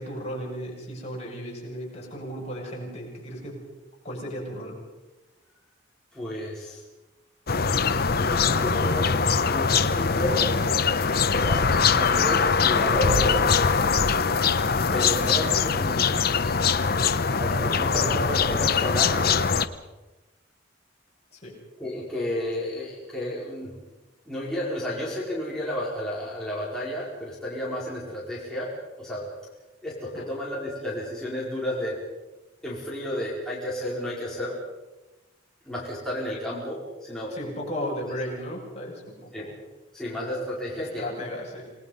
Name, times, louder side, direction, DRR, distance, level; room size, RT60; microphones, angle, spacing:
voice 1, 0.0-3.6 4.0-4.8 21.3-21.6 30.1-30.3 37.3-39.5 40.7-41.7, equal, 35° left, -3 dB, 6.8 m, -35 dB
voice 2, 6.1-6.8 8.2-9.2 9.5-10.5 11.3-13.6 14.9-16.1 17.4-19.6 21.8-23.7 24.3-28.7 29.0-29.3 29.8-32.0 32.6-34.6 35.7-37.3 39.3-39.5 39.9-41.1, left 1 dB, 5° left, -7 dB, 4.6 m, -32 dB
sound 1, 7.5-19.7, left 5 dB, 55° left, 0.9 m, -22 dB
28.0 x 20.0 x 5.5 m, 1.1 s
head